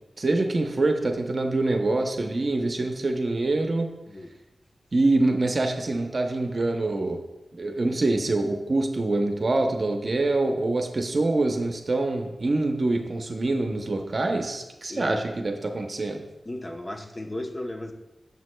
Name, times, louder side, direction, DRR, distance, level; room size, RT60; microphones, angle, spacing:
voice 1, 0.2-3.9 4.9-7.2 7.5-16.2, right 2 dB, 50° right, 4 dB, 0.7 m, -25 dB
voice 2, 14.9-15.2 16.4-17.9, left 1 dB, 30° left, 3 dB, 0.8 m, -35 dB
9.4 x 6.9 x 2.2 m, 0.99 s
wide cardioid pair, 75°, 0 cm